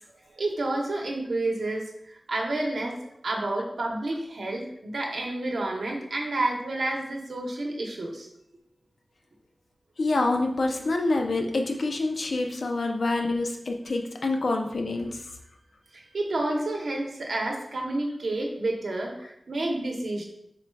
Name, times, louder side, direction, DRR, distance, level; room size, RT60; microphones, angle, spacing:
voice 1, 0.3-3.0 3.2-8.3 15.9-20.2, right 2 dB, 85° right, 0 dB, 0.7 m, -30 dB
voice 2, 10.0-15.3, left 2 dB, 80° left, 3 dB, 0.5 m, -26 dB
3.8 x 2.2 x 4.4 m, 0.76 s
wide cardioid pair, 90°, 0 cm